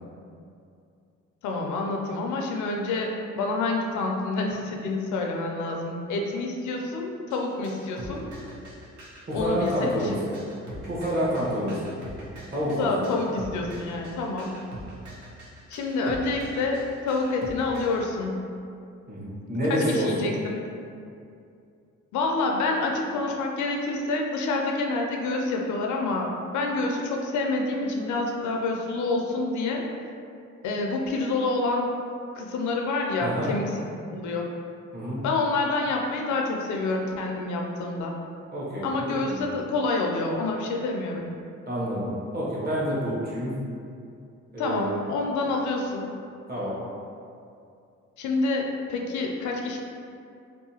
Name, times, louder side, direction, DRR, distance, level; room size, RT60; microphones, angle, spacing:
voice 1, 1.4-8.3 9.3-9.9 12.6-14.5 15.7-16.8 17.1-18.4 19.7-20.6 22.1-29.8 30.6-31.9 32.3-33.8 34.1-34.5 35.2-38.1 38.8-41.3 44.6-46.1 48.2-49.8, left 3 dB, 75° left, 1 dB, 0.4 m, -27 dB
sound 1, 7.3-18.0, right 1 dB, 70° right, 0.7 m, -42 dB
voice 2, 9.3-10.3 10.9-11.8 12.5-12.9 19.1-20.3 33.2-33.5 34.9-35.2 38.5-39.5 41.7-43.5 44.5-45.0 46.5-46.8, equal, 30° right, -7 dB, 1.0 m, -28 dB
2.7 x 2.2 x 2.7 m, 2.4 s
cardioid pair, 90°, 30 cm